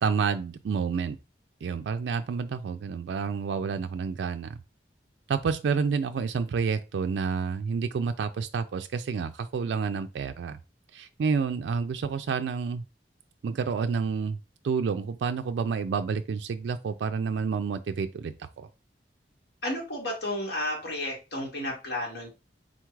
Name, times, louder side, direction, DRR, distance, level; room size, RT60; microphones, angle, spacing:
voice 1, 0.0-1.2 1.6-4.6 5.3-10.6 10.9-12.8 13.4-14.4 14.6-18.7, right 5 dB, 80° right, 0.3 m, -29 dB
voice 2, 19.6-22.3, left 1 dB, 80° left, 2.0 m, -32 dB
3.9 x 2.4 x 4.5 m
head